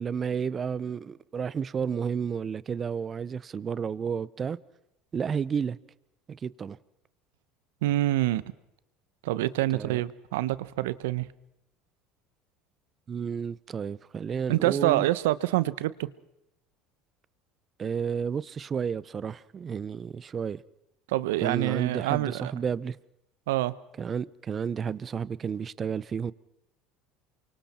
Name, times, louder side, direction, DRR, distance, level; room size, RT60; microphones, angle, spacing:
voice 1, 0.0-4.6 5.1-5.8 6.3-6.8 9.7-10.0 13.1-15.1 17.8-20.6 21.4-23.0 24.0-26.3, right 7 dB, 35° right, 0.8 m, -31 dB
voice 2, 7.8-8.4 9.2-11.3 14.5-16.1 21.1-22.5 23.5-23.7, right 16 dB, 85° right, 1.0 m, -26 dB
28.5 x 24.5 x 4.4 m
supercardioid pair, 90°, 0 cm